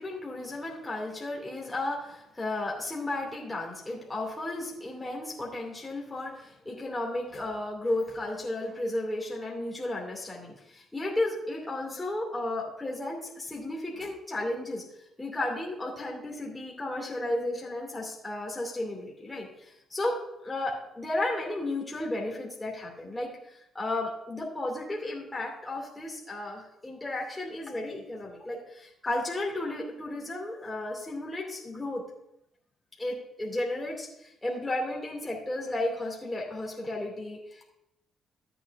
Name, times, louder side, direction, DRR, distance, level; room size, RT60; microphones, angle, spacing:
voice 1, 0.0-14.8 15.2-20.2 20.4-23.3 23.7-32.0 33.0-37.6, left 1 dB, 15° left, -3 dB, 2.5 m, -33 dB
13.0 x 8.5 x 2.6 m, 0.82 s
cardioid pair, 90°, 0 cm